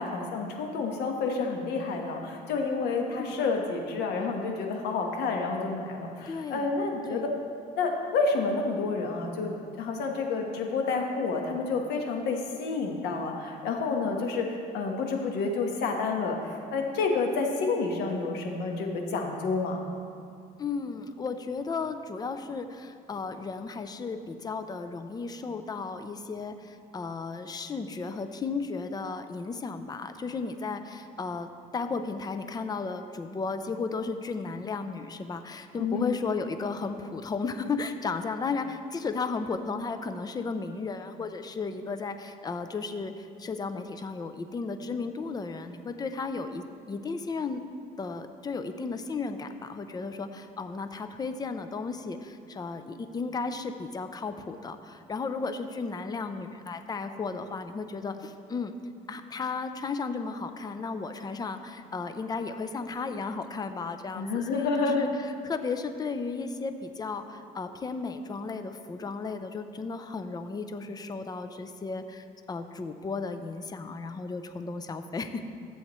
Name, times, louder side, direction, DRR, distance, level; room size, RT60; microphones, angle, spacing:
voice 1, 0.0-7.3 7.7-14.5 14.7-19.8 35.8-36.1 64.1-65.0, left 4 dB, 80° left, 2 dB, 1.3 m, -29 dB
voice 2, 6.3-6.7 7.0-7.3 20.6-47.6 48.0-58.7 59.1-75.5, left 4 dB, 25° left, 9 dB, 0.5 m, -34 dB
14.0 x 7.8 x 3.1 m, 2.3 s
cardioid pair, 110°, 17 cm